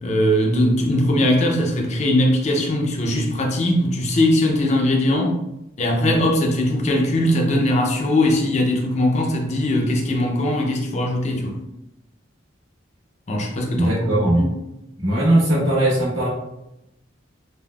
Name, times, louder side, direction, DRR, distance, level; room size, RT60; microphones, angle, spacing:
voice 1, 0.0-5.3 5.8-11.6 13.3-14.5, left 1 dB, 35° left, 1 dB, 0.4 m, -20 dB
voice 2, 13.8-14.5 15.0-16.3, right 1 dB, 85° right, -6 dB, 1.2 m, -19 dB
3.3 x 2.1 x 2.2 m, 0.89 s
head